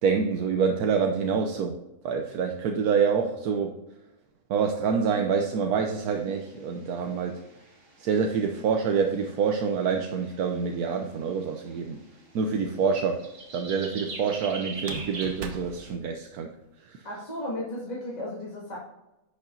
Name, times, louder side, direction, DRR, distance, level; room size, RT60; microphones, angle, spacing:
voice 1, 0.0-1.8 2.0-3.7 4.5-7.4 8.0-12.0 12.3-13.2 13.5-16.5 16.9-17.0, right 6 dB, 80° right, 3 dB, 1.3 m, -26 dB
sound 1, 6.0-15.9, right 3 dB, 40° right, 1.8 m, -44 dB
sound 2, 11.7-12.3 14.7-16.7, right 3 dB, 55° right, 1.2 m, -42 dB
voice 2, 17.0-18.8, left 1 dB, 25° left, -6 dB, 2.3 m, -34 dB
10.5 x 6.8 x 2.7 m, 0.96 s
omnidirectional pair, 1.6 m